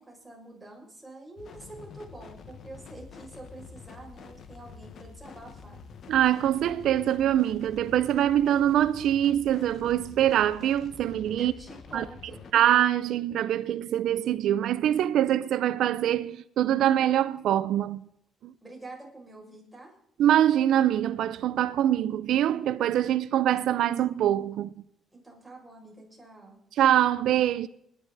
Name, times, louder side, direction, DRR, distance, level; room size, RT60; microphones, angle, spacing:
voice 1, 0.0-5.8 11.4-12.5 18.6-19.9 25.1-26.6, right 2 dB, 10° right, 6.2 m, -46 dB
sound 1, 1.4-12.5, left 5 dB, 60° left, 1.4 m, -47 dB
voice 2, 6.1-11.5 11.9-12.0 12.5-18.0 18.4-18.5 20.2-24.7 26.8-27.7, right 11 dB, 80° right, 0.5 m, -24 dB
28.0 x 10.5 x 4.1 m
cardioid pair, 90°, 0 cm